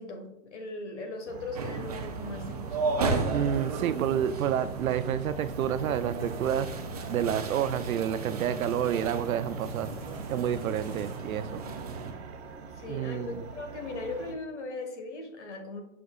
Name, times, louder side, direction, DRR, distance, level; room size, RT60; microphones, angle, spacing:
voice 1, 0.0-2.8 12.6-15.8, left 3 dB, 60° left, 4 dB, 1.4 m, -38 dB
sound 1, 1.3-14.3, right 5 dB, 55° right, 0.9 m, -44 dB
sound 2, 1.6-12.1, right 4 dB, 30° right, 0.5 m, -35 dB
sound 3, 3.2-11.2, right 2 dB, 15° right, 0.9 m, -47 dB
voice 2, 3.3-6.7 7.1-9.9 10.3-11.6 12.9-13.5, right 9 dB, 85° right, 13 dB, 0.6 m, -29 dB
6.5 x 6.4 x 2.3 m, 0.82 s
hypercardioid pair, 170°, 40 cm